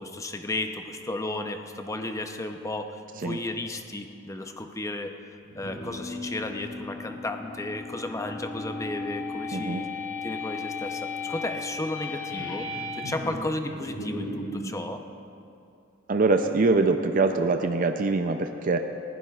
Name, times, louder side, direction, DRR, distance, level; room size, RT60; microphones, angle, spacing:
voice 1, 0.0-5.1 5.6-9.9 10.2-15.0, left 2 dB, 15° left, 6 dB, 0.7 m, -34 dB
sound 1, 5.4-14.6, left 3 dB, 80° left, 4.0 m, -35 dB
voice 2, 9.5-9.8 16.1-18.8, right 3 dB, 45° right, 6 dB, 0.5 m, -23 dB
21.0 x 16.0 x 2.4 m, 2.6 s
head